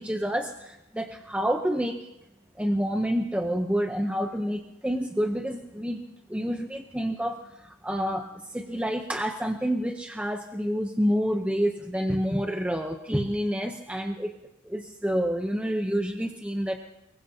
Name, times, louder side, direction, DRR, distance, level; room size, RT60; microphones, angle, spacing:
voice 1, 0.0-2.0 2.6-6.0 6.3-14.3 14.7-16.8, equal, 5° right, 4 dB, 0.7 m, -28 dB
24.0 x 21.5 x 2.8 m, 0.91 s
head